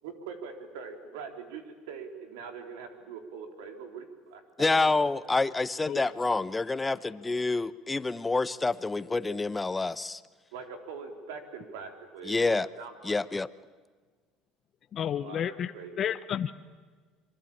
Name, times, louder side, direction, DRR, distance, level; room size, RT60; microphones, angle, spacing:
voice 1, 0.0-5.0 10.5-13.2 15.2-16.0, right 5 dB, 85° right, 5 dB, 3.8 m, -43 dB
voice 2, 4.6-10.2 12.2-12.7 13.0-13.5, left 3 dB, 15° left, 15 dB, 0.9 m, -27 dB
voice 3, 14.9-16.5, left 9 dB, 45° left, 10 dB, 0.9 m, -31 dB
26.5 x 22.5 x 8.7 m, 1.4 s
supercardioid pair, 95°, 0 cm